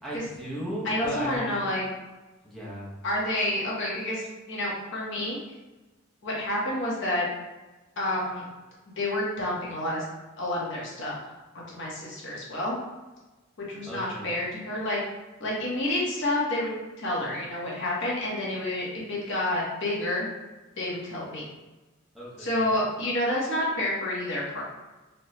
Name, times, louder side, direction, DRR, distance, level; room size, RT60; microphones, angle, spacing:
voice 1, 0.0-1.7 2.4-3.0 13.9-14.4 22.1-22.8, right 1 dB, ahead, -8 dB, 0.8 m, -36 dB
voice 2, 0.8-1.8 3.0-5.4 6.2-7.3 8.0-8.5 8.9-10.0 10.4-11.2 11.5-12.8 13.6-15.0 15.4-16.7 17.0-20.3 20.8-21.4 22.4-24.6, left 1 dB, 60° left, -5 dB, 1.1 m, -29 dB
4.2 x 2.3 x 3.1 m, 1.1 s
head